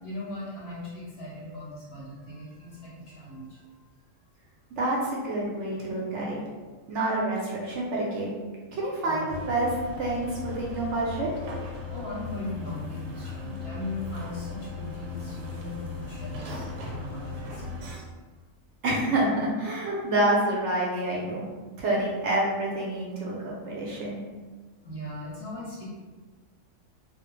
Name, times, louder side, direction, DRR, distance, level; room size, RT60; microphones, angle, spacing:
voice 1, 0.0-3.6 9.0-9.3 11.9-18.0 24.8-25.8, left 1 dB, 60° left, -6 dB, 0.7 m, -39 dB
voice 2, 4.8-6.4 6.9-8.3 8.7-11.3 18.8-21.4 21.8-24.2, right 1 dB, 65° right, -4 dB, 0.8 m, -28 dB
sound 1, 9.3-18.0, left 4 dB, 90° right, 1.0 m, -37 dB
2.3 x 2.0 x 3.0 m, 1.3 s
omnidirectional pair, 1.4 m